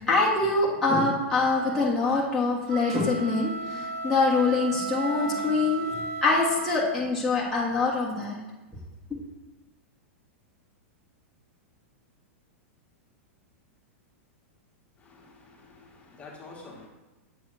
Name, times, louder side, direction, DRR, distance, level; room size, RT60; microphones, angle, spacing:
voice 1, 0.0-5.8 6.2-8.4 9.1-9.2, left 3 dB, 5° left, 1.4 m, -24 dB
sound 1, 2.6-7.2, right 3 dB, 85° right, 0.9 m, -35 dB
voice 2, 15.0-16.9, left 3 dB, 20° left, 1.5 m, -48 dB
7.7 x 3.4 x 6.1 m
hypercardioid pair, 135°, 7 cm